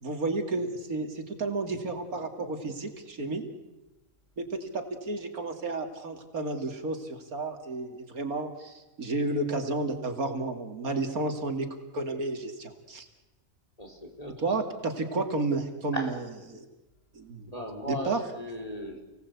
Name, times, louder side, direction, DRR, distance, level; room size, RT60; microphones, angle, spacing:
voice 1, 0.0-3.5 4.4-11.7 11.9-13.1 14.4-16.2 16.5-16.6 17.1-17.5 17.9-18.2, right 3 dB, 90° right, 6 dB, 2.9 m, -32 dB
voice 2, 13.8-14.5 15.9-16.2 17.5-19.0, equal, 25° left, 1 dB, 4.4 m, -37 dB
30.0 x 18.5 x 8.3 m, 1.0 s
omnidirectional pair, 1.5 m